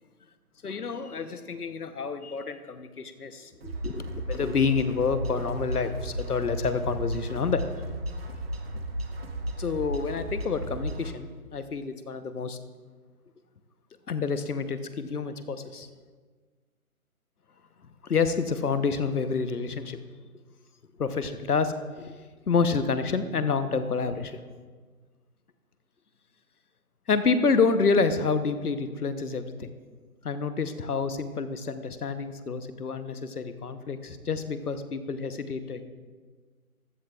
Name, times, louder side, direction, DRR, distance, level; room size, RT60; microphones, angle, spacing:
voice 1, 0.6-7.6 9.6-12.6 14.1-15.9 18.0-20.0 21.0-22.2 22.5-24.4 27.1-29.7 30.2-35.8, left 5 dB, 85° left, 11 dB, 1.0 m, -28 dB
sound 1, 3.6-11.1, right 1 dB, 40° right, 1.0 m, -35 dB
14.5 x 10.5 x 2.4 m, 1.5 s
figure-of-eight pair, 150°, 44 cm